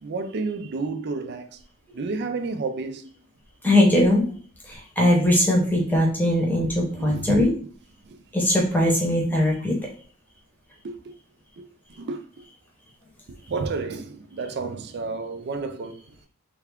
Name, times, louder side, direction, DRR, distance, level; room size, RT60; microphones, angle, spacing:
voice 1, 0.0-1.6 1.9-3.1 7.0-7.5 8.0-8.2 9.1-9.4 9.8-9.9 10.8-11.1 11.6-11.7 12.0-12.2 13.5-16.0, right 3 dB, 50° right, 0.4 m, -31 dB
voice 2, 3.6-4.2 4.7-7.5 8.3-9.8, left 1 dB, 10° left, 0.9 m, -20 dB
3.3 x 2.3 x 3.5 m
head